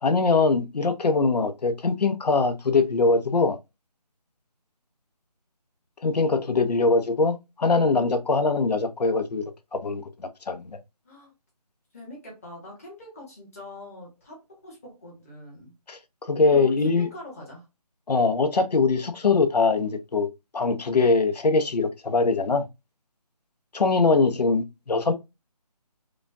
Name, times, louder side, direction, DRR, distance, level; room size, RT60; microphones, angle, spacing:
voice 1, 0.0-3.6 6.0-9.4 9.7-10.7 15.9-17.1 18.1-20.3 20.5-22.7 23.7-25.1, left 3 dB, 75° left, 0.8 m, -22 dB
voice 2, 11.9-15.7 16.5-17.7 24.0-24.4, left 1 dB, 20° left, 1.4 m, -43 dB
4.9 x 2.4 x 2.6 m
figure-of-eight pair, 170°, 21 cm